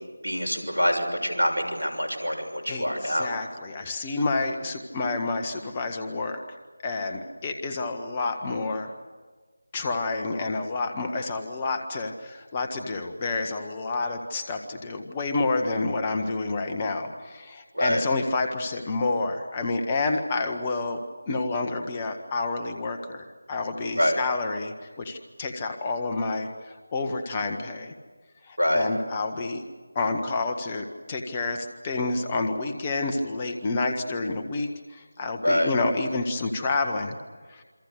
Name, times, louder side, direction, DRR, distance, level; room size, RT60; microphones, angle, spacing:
voice 1, 0.2-3.3 17.7-18.0 24.0-24.2 28.6-28.9 35.4-35.7, equal, 80° right, 4 dB, 6.5 m, -25 dB
voice 2, 2.7-6.4 6.8-8.9 9.7-27.9 28.4-29.6 29.9-37.2 37.5-37.6, left 3 dB, 20° left, 5 dB, 1.5 m, -29 dB
27.5 x 25.0 x 6.7 m, 1.4 s
figure-of-eight pair, 165°, 0 cm